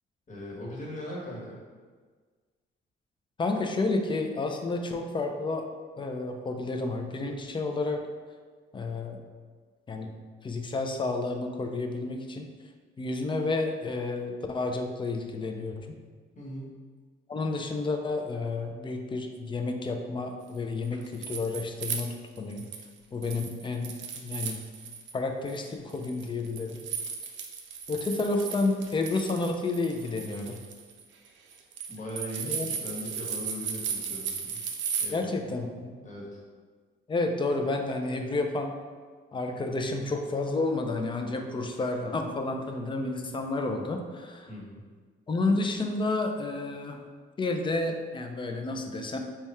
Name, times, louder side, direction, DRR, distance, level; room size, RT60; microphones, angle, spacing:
voice 1, 0.3-1.6 16.3-16.8 31.9-34.6 35.0-35.4 36.0-36.4 44.5-44.8, equal, 40° left, -5 dB, 1.3 m, -39 dB
voice 2, 3.4-5.7 6.0-8.1 8.7-9.2 9.9-10.1 10.4-12.5 13.0-15.9 17.3-22.7 23.1-24.6 25.1-26.8 27.9-30.6 32.5-32.7 35.1-36.0 37.1-38.8 39.3-44.5 45.3-47.0 47.4-49.2, left 3 dB, 25° left, 4 dB, 0.4 m, -30 dB
sound 1, 20.8-22.9 23.2-25.1 25.5-35.1, right 6 dB, 70° right, 0.5 m, -36 dB
3.4 x 2.3 x 4.2 m, 1.5 s
cardioid pair, 90°, 20 cm